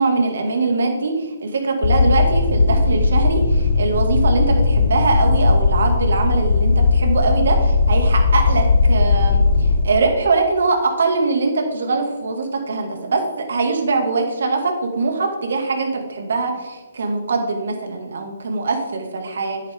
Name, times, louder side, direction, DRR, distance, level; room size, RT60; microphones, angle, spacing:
voice 1, 0.0-19.6, right 3 dB, 70° right, 3 dB, 2.5 m, -22 dB
sound 1, 1.8-9.8, left 4 dB, 65° left, 1.3 m, -17 dB
10.5 x 8.9 x 3.9 m, 1.2 s
hypercardioid pair, 155°, 0 cm